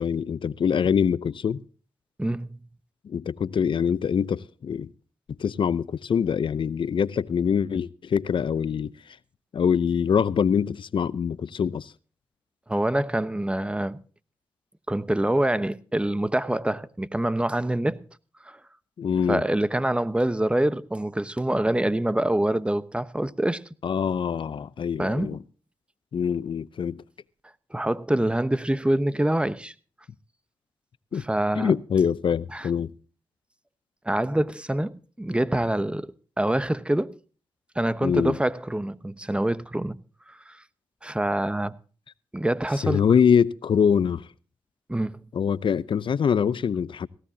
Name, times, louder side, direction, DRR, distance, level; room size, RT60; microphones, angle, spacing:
voice 1, 0.0-1.6 3.0-4.9 5.4-9.2 9.5-11.9 19.0-19.4 23.8-25.4 26.1-27.0 31.1-31.2 31.6-32.9 38.0-38.4 42.8-44.3 45.3-47.1, left 7 dB, 65° left, 0.7 m, -24 dB
voice 2, 2.2-2.6 12.7-14.0 14.9-18.0 18.4-18.6 19.3-23.6 25.0-25.3 27.7-29.7 31.1-31.7 32.5-32.7 34.0-37.2 37.7-40.0 40.3-40.6 41.0-41.7 42.3-43.0 44.9-45.2, right 1 dB, 10° right, 1.0 m, -25 dB
17.5 x 15.5 x 2.8 m
supercardioid pair, 45°, 9 cm